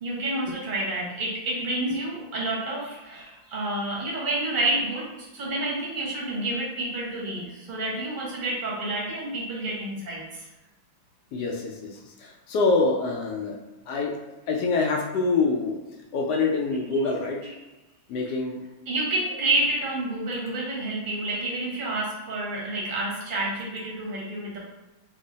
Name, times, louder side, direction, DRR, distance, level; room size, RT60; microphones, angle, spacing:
voice 1, 0.0-10.5 17.4-17.5 18.9-24.6, right 2 dB, 35° right, -5 dB, 0.8 m, -29 dB
voice 2, 11.3-13.6 13.9-14.1 14.5-15.8 16.1-17.5 18.1-18.6, left 3 dB, 75° left, 1 dB, 1.0 m, -25 dB
3.6 x 2.0 x 3.8 m, 1.1 s
omnidirectional pair, 2.2 m